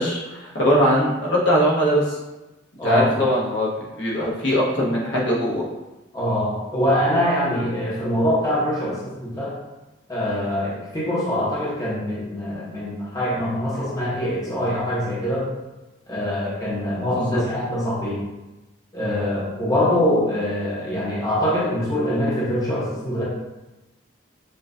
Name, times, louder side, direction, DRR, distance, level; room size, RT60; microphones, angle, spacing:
voice 1, 0.0-2.2 2.8-3.7 4.0-5.7 17.3-17.4, equal, 70° left, -5 dB, 1.1 m, -21 dB
voice 2, 2.8-3.2 6.1-9.6 10.1-15.5 16.1-18.2 18.9-23.2, left 1 dB, 20° left, -7 dB, 0.8 m, -24 dB
6.7 x 2.3 x 2.6 m, 1.1 s
head